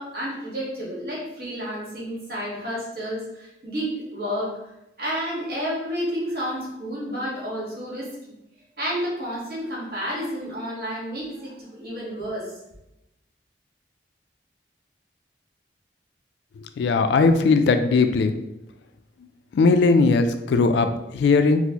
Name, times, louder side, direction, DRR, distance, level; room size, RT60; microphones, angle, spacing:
voice 1, 0.0-4.5 5.0-8.1 8.8-12.5, equal, 55° right, -6 dB, 1.4 m, -30 dB
voice 2, 16.8-18.3 19.5-21.6, left 4 dB, 70° left, 8 dB, 0.3 m, -19 dB
4.3 x 2.0 x 2.8 m, 0.89 s
head